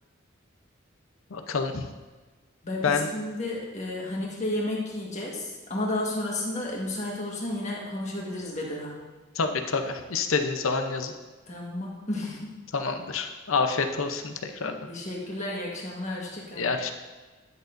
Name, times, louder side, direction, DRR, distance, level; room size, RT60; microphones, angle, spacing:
voice 1, 1.3-1.9 2.8-3.1 9.4-11.1 12.7-14.7 16.6-16.9, left 4 dB, 85° left, 6 dB, 0.7 m, -27 dB
voice 2, 2.6-9.0 11.5-12.6 14.6-16.7, left 1 dB, 35° left, -3 dB, 1.5 m, -32 dB
10.0 x 6.5 x 2.6 m, 1.3 s
head